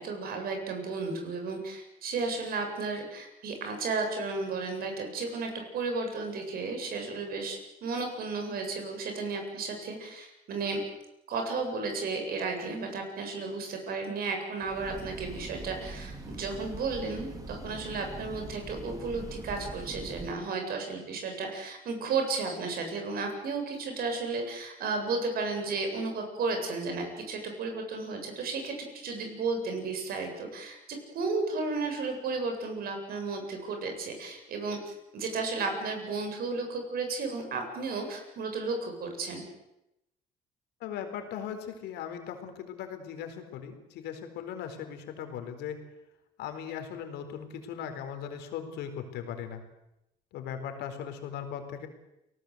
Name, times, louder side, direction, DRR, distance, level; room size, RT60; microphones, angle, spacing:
voice 1, 0.0-10.8 11.3-30.8 31.1-39.4, right 3 dB, 65° right, 4 dB, 7.8 m, -33 dB
Train, 14.6-20.3, right 2 dB, 20° right, 3.8 m, -42 dB
voice 2, 40.8-45.8 46.4-49.6 50.3-51.9, left 8 dB, 85° left, 7 dB, 4.2 m, -38 dB
29.0 x 18.5 x 8.1 m, 0.88 s
cardioid pair, 110°, 17 cm